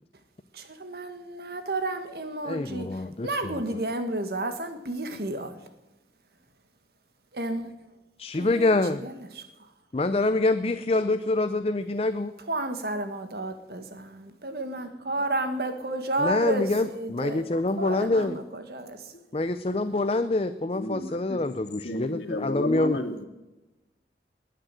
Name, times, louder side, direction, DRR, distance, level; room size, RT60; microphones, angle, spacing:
voice 1, 0.5-2.9 3.2-5.5 7.3-7.7 8.4-8.7 9.0-9.4 12.5-17.4 17.8-19.0, right 2 dB, 60° right, 1.7 m, -31 dB
voice 2, 2.4-3.8 8.2-9.0 9.9-12.3 16.2-18.4 19.3-23.0, left 2 dB, 35° left, 0.5 m, -26 dB
voice 3, 20.7-21.4 21.8-23.2, left 1 dB, 70° left, 2.4 m, -32 dB
20.5 x 9.1 x 7.6 m
head